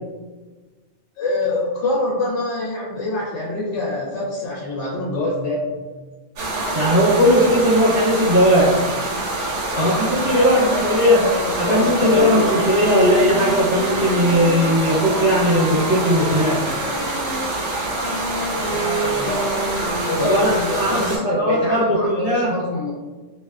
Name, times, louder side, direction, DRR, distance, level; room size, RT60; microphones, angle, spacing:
voice 1, 1.2-5.9 9.7-12.6 18.5-19.5 20.1-22.9, left 2 dB, 70° left, -5 dB, 0.9 m, -25 dB
sound 1, 6.4-21.2, right 2 dB, 85° right, 1.0 m, -26 dB
voice 2, 6.7-8.8 9.8-11.2 11.6-16.6 20.2-22.5, equal, 55° right, -11 dB, 1.1 m, -18 dB
Wind instrument woodwind instrument, 11.3-17.5 18.0-20.6, equal, 40° left, 1.2 m, -29 dB
2.5 x 2.2 x 2.2 m, 1.3 s
omnidirectional pair, 1.2 m